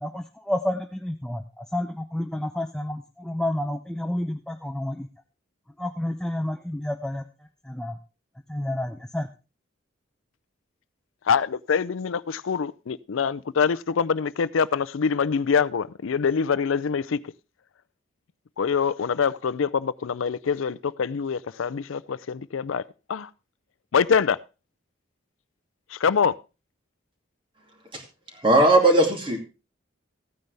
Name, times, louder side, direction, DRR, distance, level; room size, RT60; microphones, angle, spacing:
voice 1, 0.0-5.1 5.8-7.2 7.6-8.0 8.5-9.3, left 1 dB, 5° left, 0.6 m, -30 dB
voice 2, 11.3-17.2 18.6-22.8 23.1-23.3 23.9-24.4 25.9-26.3, left 6 dB, 85° left, 0.5 m, -24 dB
voice 3, 28.4-29.4, right 2 dB, 25° right, 2.6 m, -18 dB
15.0 x 9.4 x 3.4 m
head